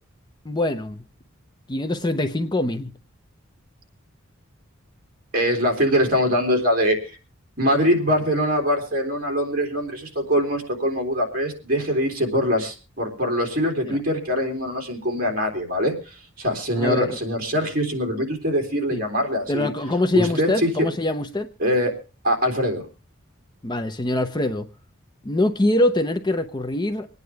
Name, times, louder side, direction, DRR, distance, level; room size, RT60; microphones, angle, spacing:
voice 1, 0.4-1.0 1.7-2.9 13.9-14.0 16.8-17.1 18.9-19.0 19.5-21.5 23.6-24.7 25.2-27.1, left 1 dB, 20° left, 0.7 m, -23 dB
voice 2, 5.3-7.2 7.6-19.7 20.1-20.9 21.6-21.9 22.2-22.8, equal, 45° right, 3.4 m, -23 dB
26.0 x 9.5 x 3.4 m
head